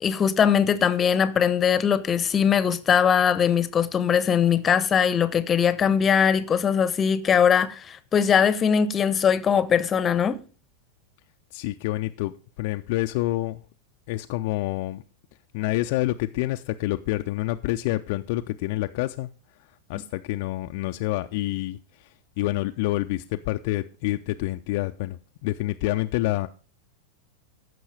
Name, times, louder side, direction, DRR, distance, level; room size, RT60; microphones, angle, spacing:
voice 1, 0.0-10.4, left 7 dB, 20° left, 0.8 m, -21 dB
voice 2, 11.5-12.3 12.6-13.6 14.1-15.0 15.5-19.3 19.9-22.1 22.4-26.5, left 17 dB, 50° left, 0.5 m, -27 dB
14.0 x 6.2 x 4.8 m
figure-of-eight pair, 90°, 0 cm